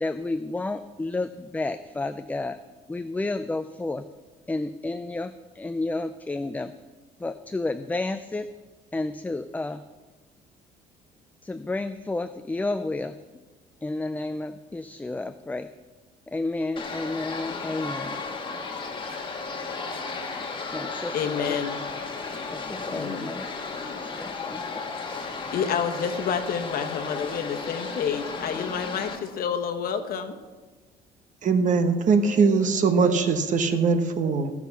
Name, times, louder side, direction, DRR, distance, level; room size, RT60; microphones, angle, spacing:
voice 1, 0.0-2.6 2.9-4.0 4.5-6.7 7.2-8.5 8.9-9.8 11.4-13.2 13.8-15.7 16.3-18.2 20.7-21.6 22.5-24.8, left 2 dB, 10° left, 10 dB, 0.4 m, -31 dB
sound 1, 16.8-29.2, left 4 dB, 30° left, 1.5 m, -34 dB
voice 2, 21.1-21.8 22.9-23.3 25.5-30.4, left 7 dB, 60° left, 6 dB, 1.1 m, -29 dB
voice 3, 31.4-34.5, right 4 dB, 50° right, 8 dB, 1.1 m, -21 dB
15.0 x 6.0 x 5.8 m, 1.3 s
cardioid pair, 110°, 17 cm